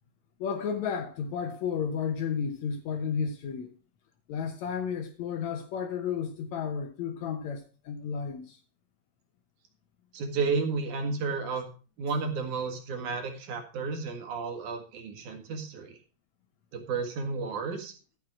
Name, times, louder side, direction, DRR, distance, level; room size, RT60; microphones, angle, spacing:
voice 1, 0.4-3.7 4.3-8.6, left 7 dB, 70° left, 1.9 m, -32 dB
voice 2, 10.1-11.7 12.0-16.0 16.7-17.9, right 4 dB, 65° right, 3.0 m, -32 dB
13.0 x 6.1 x 5.7 m
omnidirectional pair, 3.9 m